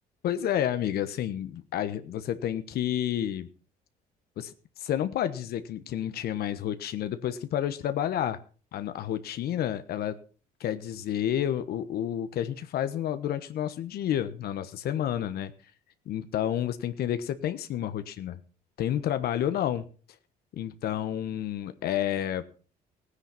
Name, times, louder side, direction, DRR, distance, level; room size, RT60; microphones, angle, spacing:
voice 1, 0.2-3.5 4.4-4.5 4.8-8.4 8.7-10.2 10.6-15.5 16.1-18.4 18.8-19.9 20.5-22.4, left 10 dB, 65° left, 11 dB, 1.2 m, -30 dB
16.0 x 9.9 x 5.7 m, 0.39 s
cardioid pair, 110°, 17 cm